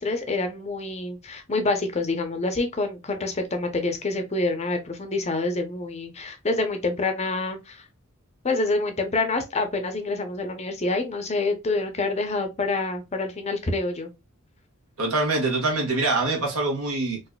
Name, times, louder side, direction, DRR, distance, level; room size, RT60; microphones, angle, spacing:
voice 1, 0.0-7.8 8.4-14.1, left 3 dB, 30° left, 0.6 m, -27 dB
voice 2, 15.0-17.2, right 2 dB, 80° right, 1.4 m, -24 dB
4.0 x 2.5 x 2.2 m
head